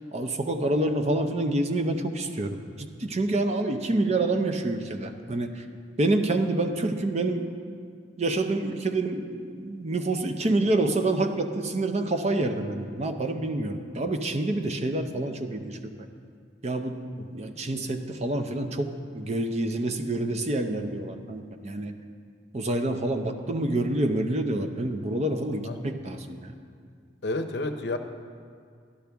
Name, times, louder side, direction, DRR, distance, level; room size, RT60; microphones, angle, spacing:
voice 1, 0.1-5.7 6.0-7.5 8.2-16.1 16.6-17.0 17.3-21.9 22.5-26.5, right 2 dB, 35° right, 6 dB, 0.6 m, -27 dB
voice 2, 27.2-28.0, left 2 dB, 65° left, 7 dB, 0.7 m, -30 dB
13.5 x 11.0 x 3.5 m, 2.1 s
head